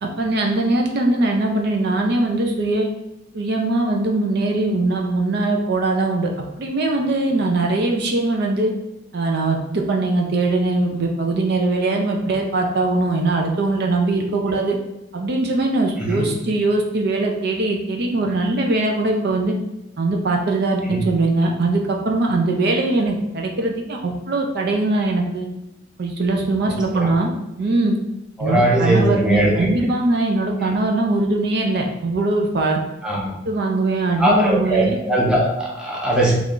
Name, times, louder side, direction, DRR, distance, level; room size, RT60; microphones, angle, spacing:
voice 1, 0.0-2.9 3.3-6.3 6.6-8.7 9.1-14.8 15.1-19.5 20.0-25.5 26.0-27.3 27.6-28.0 28.4-32.8 33.4-35.0, right 2 dB, 55° right, 1 dB, 0.4 m, -21 dB
voice 2, 28.4-29.7 33.0-33.3 34.2-36.3, right 1 dB, 5° right, -4 dB, 0.6 m, -19 dB
3.2 x 2.4 x 3.7 m, 0.92 s
head